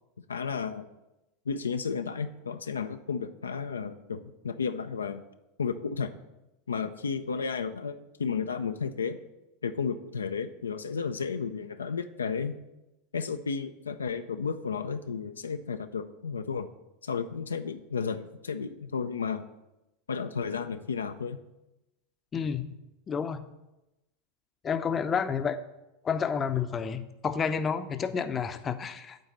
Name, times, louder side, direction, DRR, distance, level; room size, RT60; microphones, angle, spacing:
voice 1, 0.3-0.9 1.5-5.2 5.6-6.1 6.7-9.2 9.6-12.6 13.1-16.7 17.0-19.5 20.1-21.4, left 5 dB, 85° left, 8 dB, 0.4 m, -33 dB
voice 2, 22.3-22.6 23.1-23.4 24.6-25.6 26.0-29.2, left 6 dB, 30° left, 10 dB, 0.6 m, -30 dB
9.2 x 4.0 x 7.1 m, 0.96 s
hypercardioid pair, 90°, 0 cm